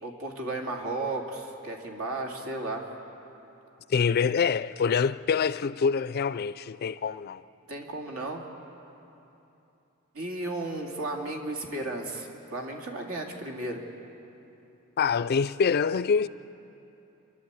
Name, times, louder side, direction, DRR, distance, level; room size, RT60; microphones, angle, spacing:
voice 1, 0.0-2.8 7.7-8.4 10.1-13.8, right 2 dB, 80° right, 2.6 m, -34 dB
voice 2, 3.9-7.4 15.0-16.3, left 6 dB, 50° left, 0.4 m, -25 dB
28.0 x 11.0 x 8.2 m
head